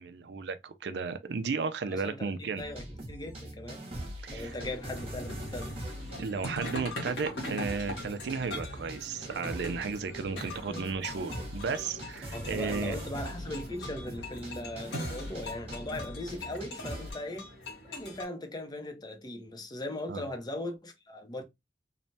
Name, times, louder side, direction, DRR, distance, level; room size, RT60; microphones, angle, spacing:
voice 1, 0.0-2.6 4.2-4.5 6.2-13.0 20.1-20.2, right 5 dB, 70° right, 0.4 m, -34 dB
voice 2, 1.9-2.8 3.1-3.9 4.3-5.7 10.6-10.9 12.3-17.5 17.8-21.4, left 1 dB, 25° left, 0.6 m, -39 dB
sound 1, 2.6-17.1, right 1 dB, 35° right, 0.9 m, -42 dB
sound 2, 4.4-18.2, left 1 dB, 80° left, 1.0 m, -42 dB
3.1 x 2.1 x 2.6 m
head